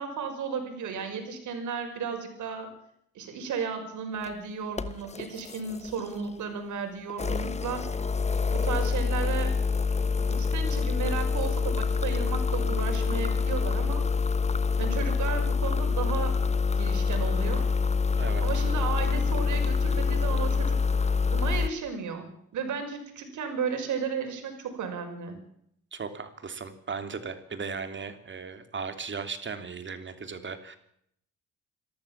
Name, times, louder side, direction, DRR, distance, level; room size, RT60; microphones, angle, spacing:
voice 1, 0.0-2.7 3.1-7.8 8.5-9.6 10.3-14.0 14.8-16.4 16.8-17.7 18.4-20.8 21.3-25.4, right 6 dB, 75° right, 5 dB, 5.9 m, -34 dB
sound 1, 4.1-4.3 4.8-6.3 7.1-21.7, left 5 dB, 20° left, 1.2 m, -26 dB
voice 2, 25.9-30.8, right 5 dB, 40° right, 9 dB, 3.1 m, -37 dB
26.0 x 14.0 x 7.4 m, 0.71 s
cardioid pair, 90°, 30 cm